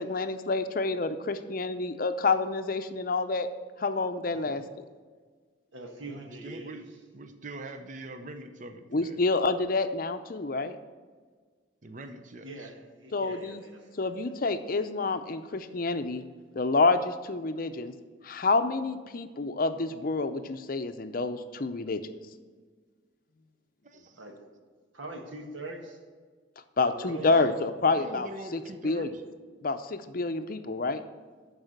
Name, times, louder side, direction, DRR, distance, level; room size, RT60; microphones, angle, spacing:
voice 1, 0.0-3.5 3.8-4.8 8.9-10.8 13.1-13.6 14.0-16.2 16.6-17.9 18.2-22.0 26.8-29.1 29.6-31.0, left 3 dB, 50° left, 9 dB, 0.6 m, -28 dB
voice 2, 5.7-6.8 12.4-14.1 24.2-24.5 24.9-26.0 26.8-27.2, right 2 dB, 85° right, 3 dB, 1.6 m, -43 dB
voice 3, 6.3-9.2 11.8-12.7 23.8-24.2 27.2-29.1, right 2 dB, 40° right, 7 dB, 0.7 m, -43 dB
12.0 x 4.8 x 6.6 m, 1.5 s
head